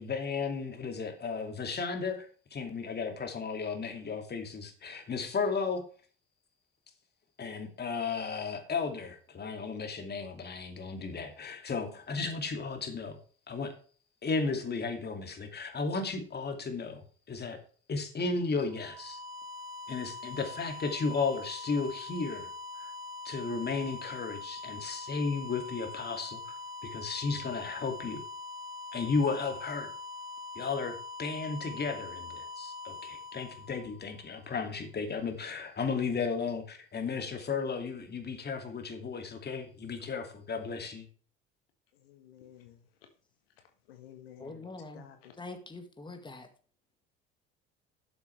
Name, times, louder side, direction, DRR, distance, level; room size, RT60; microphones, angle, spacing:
voice 1, 0.0-5.8 7.4-13.2 13.5-13.7 14.2-17.0 17.3-17.6 17.9-19.2 19.9-22.5 22.8-22.9 23.2-26.6 26.8-28.2 28.9-29.9 30.6-41.1, left 4 dB, 35° left, 5 dB, 2.5 m, -34 dB
sound 1, 18.6-34.4, left 3 dB, 75° right, 1.7 m, -43 dB
voice 2, 42.0-42.8 43.9-45.4, left 10 dB, 85° left, 6 dB, 1.5 m, -53 dB
voice 3, 44.4-45.0 45.4-46.5, left 3 dB, 15° left, 6 dB, 1.9 m, -44 dB
12.5 x 7.1 x 3.3 m, 0.42 s
hypercardioid pair, 65°, 29 cm